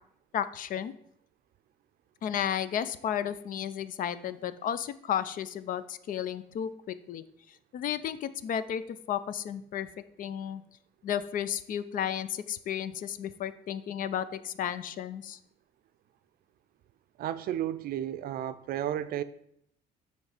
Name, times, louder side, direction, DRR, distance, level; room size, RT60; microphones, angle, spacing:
voice 1, 0.3-0.9 2.2-7.2 7.7-9.9 10.2-10.6 11.0-15.4, left 9 dB, 55° left, 14 dB, 0.5 m, -33 dB
voice 2, 17.2-19.2, right 11 dB, 60° right, 13 dB, 0.5 m, -32 dB
9.0 x 3.2 x 4.9 m, 0.69 s
cardioid pair, 110°, 17 cm